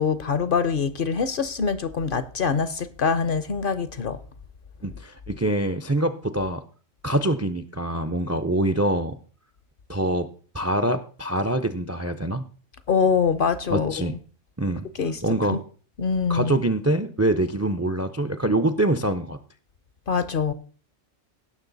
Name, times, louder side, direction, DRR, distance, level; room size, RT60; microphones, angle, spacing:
voice 1, 0.0-4.2 12.9-14.1 15.0-15.2 15.5-15.6 16.0-16.6 20.1-20.5, left 5 dB, 50° left, 0.7 m, -24 dB
voice 2, 4.8-6.6 7.0-9.2 9.9-10.3 10.5-12.4 13.7-14.2 14.6-14.9 15.2-15.6 16.3-19.4, right 1 dB, 25° right, 0.3 m, -24 dB
17.0 x 6.4 x 4.0 m
omnidirectional pair, 1.3 m